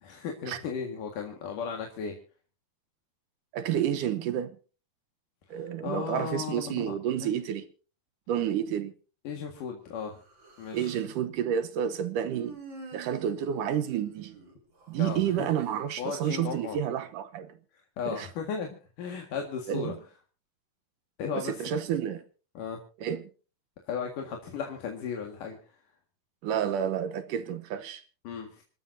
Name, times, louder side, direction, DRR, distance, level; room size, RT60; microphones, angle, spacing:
voice 1, 0.0-2.1 5.5-6.9 7.2-7.4 9.2-10.2 10.6-11.0 15.0-15.5 16.0-16.8 18.0-19.9 21.2-21.7 22.5-22.8 23.9-25.6 28.2-28.6, left 6 dB, 60° left, 3.2 m, -35 dB
voice 2, 3.5-4.6 5.5-7.7 8.3-8.9 10.7-12.6 12.9-14.4 14.9-17.5 18.1-18.3 19.7-20.0 21.3-22.2 23.0-23.2 26.4-28.0, right 9 dB, 70° right, 2.2 m, -30 dB
Human voice, 10.1-11.1 12.3-15.0, right 4 dB, 30° right, 3.6 m, -47 dB
27.5 x 13.0 x 2.7 m
omnidirectional pair, 4.6 m